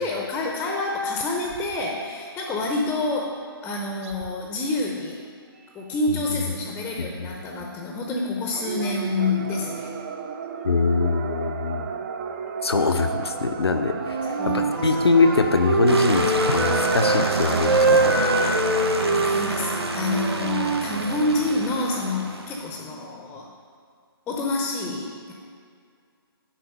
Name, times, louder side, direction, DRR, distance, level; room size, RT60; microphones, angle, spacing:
voice 1, 0.0-5.2 5.7-9.9 14.4-15.1 17.9-18.1 19.1-23.5 24.3-25.3, left 2 dB, 10° left, 0 dB, 0.6 m, -28 dB
sound 1, 1.5-1.9 2.9-3.0 4.0-4.4 4.7-5.0 5.8-5.9 6.4-6.5 7.1-7.2 8.4-18.6, right 7 dB, 35° right, 0.5 m, -33 dB
voice 2, 6.1-6.4 7.0-7.3 10.6-11.9 12.6-14.5 14.8-18.1, left 4 dB, 85° left, 7 dB, 0.7 m, -23 dB
Wind instrument woodwind instrument, 14.0-17.3 17.6-21.3, right 2 dB, 65° right, 1.1 m, -24 dB
sound 2, 15.9-22.7, right 2 dB, 90° right, 0.9 m, -28 dB
10.5 x 4.0 x 5.3 m, 2.2 s
figure-of-eight pair, 145°, 13 cm